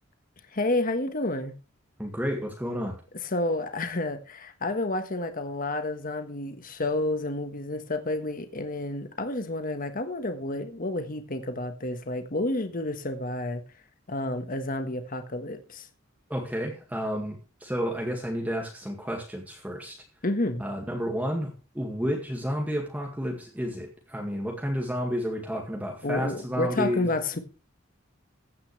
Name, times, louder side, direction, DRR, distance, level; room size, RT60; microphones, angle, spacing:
voice 1, 0.5-1.5 3.2-13.6 14.1-15.9 20.2-20.7 26.0-27.4, left 2 dB, 40° left, 1.4 m, -30 dB
voice 2, 2.0-3.0 16.3-17.4 17.6-20.0 20.6-27.1, equal, 10° right, 2.0 m, -31 dB
15.5 x 9.8 x 3.3 m
head